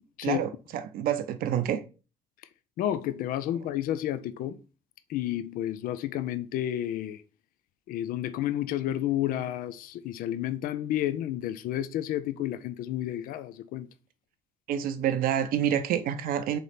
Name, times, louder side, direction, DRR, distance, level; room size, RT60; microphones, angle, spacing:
voice 1, 0.2-1.8 14.7-16.6, right 9 dB, 65° right, 0.5 m, -28 dB
voice 2, 2.8-4.6 5.1-7.2 7.9-13.9, left 12 dB, 65° left, 0.4 m, -31 dB
3.9 x 3.2 x 4.1 m
hypercardioid pair, 60°, 16 cm